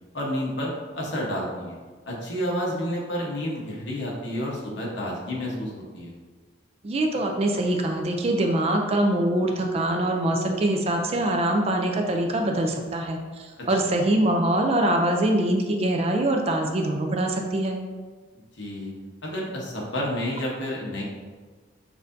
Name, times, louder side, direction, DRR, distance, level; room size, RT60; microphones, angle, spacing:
voice 1, 0.1-1.7 2.0-6.1 13.6-13.9 18.6-18.9 19.2-21.0, equal, 60° left, -3 dB, 1.0 m, -30 dB
voice 2, 6.8-17.8, right 1 dB, 30° right, 3 dB, 0.3 m, -24 dB
6.2 x 2.6 x 2.6 m, 1.4 s
head